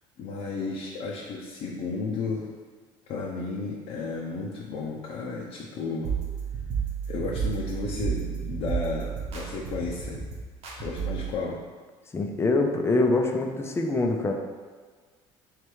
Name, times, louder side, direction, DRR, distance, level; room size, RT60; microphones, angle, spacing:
voice 1, 0.2-2.5 3.1-6.2 7.1-10.2 10.8-11.6, left 4 dB, 60° left, -3 dB, 0.7 m, -33 dB
sound 1, 6.0-11.3, right 7 dB, 60° right, 1.0 m, -32 dB
voice 2, 12.1-14.3, left 2 dB, 20° left, 3 dB, 0.6 m, -24 dB
3.3 x 3.3 x 4.6 m, 1.5 s
supercardioid pair, 95°, 12 cm